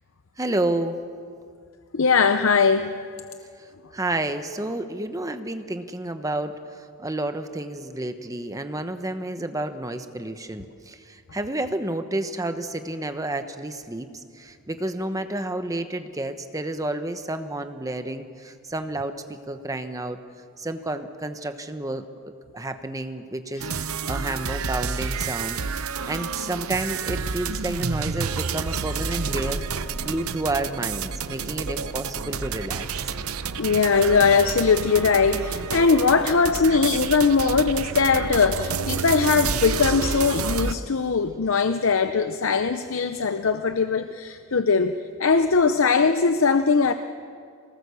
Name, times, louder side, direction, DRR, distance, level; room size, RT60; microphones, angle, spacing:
voice 1, 0.4-1.0 3.6-20.2 20.6-32.8 42.1-42.6, right 1 dB, 15° right, 8 dB, 0.9 m, -30 dB
voice 2, 1.9-2.9 33.6-46.9, left 5 dB, 65° left, 9 dB, 0.7 m, -20 dB
sound 1, 23.6-40.8, right 5 dB, 90° right, 0.8 m, -29 dB
25.5 x 18.5 x 7.0 m, 2.2 s
head